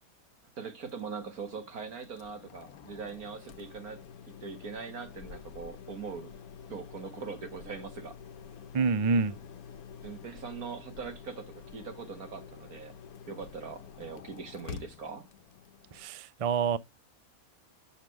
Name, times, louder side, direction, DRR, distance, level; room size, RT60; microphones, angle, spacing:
voice 1, 0.6-4.0 4.4-6.3 6.7-8.1 10.0-12.9 13.3-15.3, right 5 dB, 90° right, 2.3 m, -41 dB
sound 1, 0.8-16.0, left 7 dB, 90° left, 1.2 m, -48 dB
voice 2, 8.7-9.4 15.9-16.8, right 5 dB, 50° right, 0.4 m, -27 dB
7.9 x 6.5 x 3.4 m
omnidirectional pair, 1.5 m